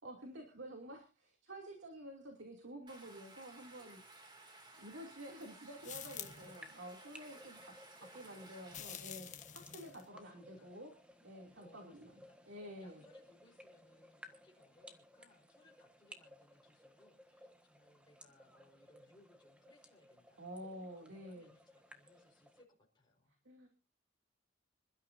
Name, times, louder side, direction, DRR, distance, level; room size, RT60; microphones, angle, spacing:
voice 1, 0.0-4.0 4.7-7.8 8.1-10.9 11.2-13.0 20.4-21.5 23.4-23.7, equal, 75° right, 1 dB, 2.8 m, -50 dB
Stream, 2.9-8.8, right 2 dB, 25° right, 2.6 m, -57 dB
sound 1, 5.8-6.6 8.7-10.0, left 9 dB, 40° left, 1.4 m, -48 dB
sound 2, 6.4-22.6, equal, 5° right, 1.5 m, -60 dB
voice 2, 8.0-8.7 9.6-10.8 11.6-23.4, left 1 dB, 25° left, -2 dB, 4.7 m, -68 dB
26.5 x 12.5 x 2.7 m, 0.31 s
head